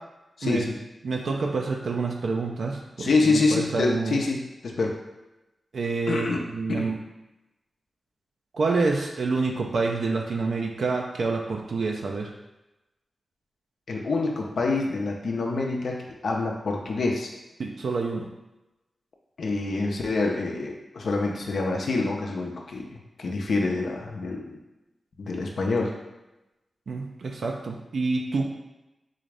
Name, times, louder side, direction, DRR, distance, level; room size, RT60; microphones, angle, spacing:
voice 1, 0.4-0.8 3.0-5.0 6.1-6.4 6.7-6.9 13.9-17.3 19.4-24.6 25.2-25.9, left 3 dB, 75° left, 0 dB, 0.6 m, -26 dB
voice 2, 1.0-4.2 5.7-7.0 8.5-12.3 17.6-18.3 26.9-28.5, right 3 dB, 75° right, 1 dB, 0.4 m, -27 dB
3.9 x 2.5 x 3.3 m, 0.99 s
cardioid pair, 40°, 0 cm